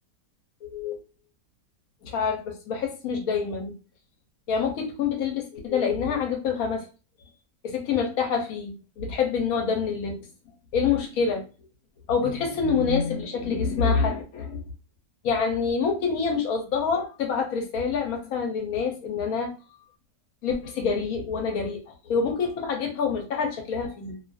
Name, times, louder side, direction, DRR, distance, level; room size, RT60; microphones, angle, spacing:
voice 1, 0.6-1.0 2.0-3.7 4.5-6.8 7.6-10.2 10.7-11.4 12.1-14.6 15.2-19.5 20.4-24.2, left 5 dB, 65° left, 1.0 m, -26 dB
2.7 x 2.4 x 2.3 m
omnidirectional pair, 1.9 m